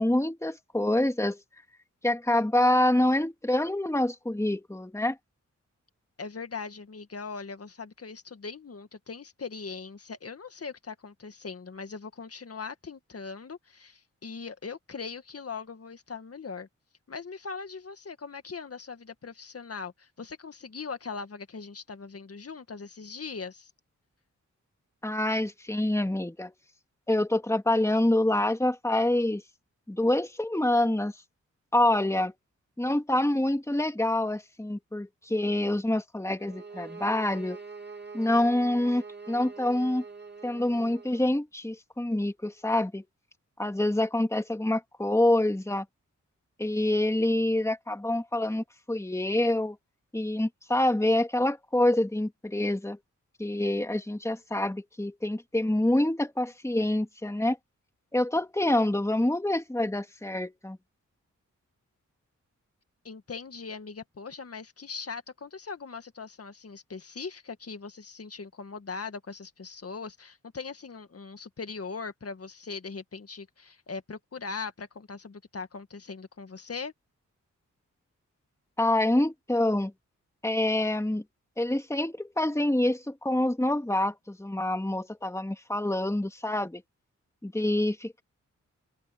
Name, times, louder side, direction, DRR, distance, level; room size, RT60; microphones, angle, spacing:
voice 1, 0.0-1.4 2.0-5.2 25.0-26.5 27.1-29.4 29.9-31.1 31.7-32.3 32.8-37.6 38.1-40.0 40.4-43.0 43.6-45.9 46.6-49.8 50.1-53.0 53.4-57.6 58.1-60.8 78.8-79.9 80.4-81.2 81.6-86.8 87.4-88.2, left 1 dB, 10° left, 2.3 m, -26 dB
voice 2, 6.2-16.7 17.1-23.7 63.0-76.9, left 5 dB, 50° left, 1.9 m, -40 dB
sound 1, 36.4-41.3, right 4 dB, 35° right, 2.4 m, -44 dB
open air
cardioid pair, 65°, 30 cm